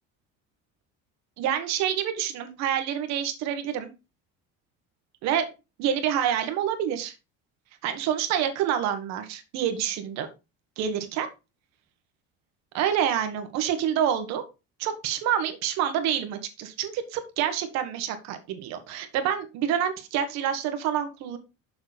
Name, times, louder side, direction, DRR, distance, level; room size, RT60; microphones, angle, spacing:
voice 1, 1.4-3.9 5.2-5.5 5.8-7.1 7.8-10.3 10.8-11.3 12.7-14.4 14.8-21.4, right 9 dB, 65° right, 8 dB, 1.6 m, -27 dB
7.0 x 6.8 x 4.1 m, 0.27 s
cardioid pair, 175°, 30 cm